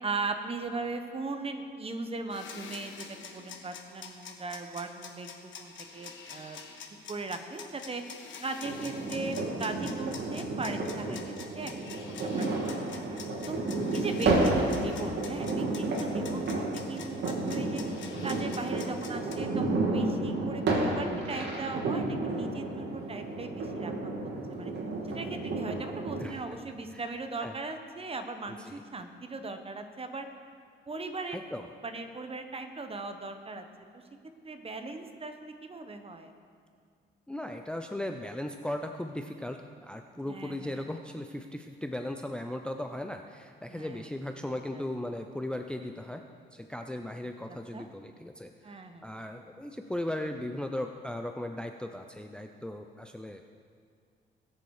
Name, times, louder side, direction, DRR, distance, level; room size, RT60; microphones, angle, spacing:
voice 1, 0.0-5.3 5.6-6.6 7.1-8.0 8.4-13.2 13.5-13.6 13.9-17.8 18.2-24.7 25.1-30.3 30.9-31.4 31.8-33.7 34.4-36.3 40.3-40.8 43.7-44.0 44.7-44.8 47.5-47.9 48.6-49.1, right 3 dB, 30° right, 7 dB, 1.2 m, -38 dB
sound 1, 2.3-19.4, left 6 dB, 70° left, 1.4 m, -46 dB
sound 2, 8.6-26.2, right 2 dB, 60° right, 2.5 m, -31 dB
voice 2, 28.5-28.8 31.3-31.7 37.3-46.2 46.5-53.5, left 1 dB, 5° left, 5 dB, 0.6 m, -37 dB
20.0 x 6.9 x 4.9 m, 2.2 s
cardioid pair, 90°, 20 cm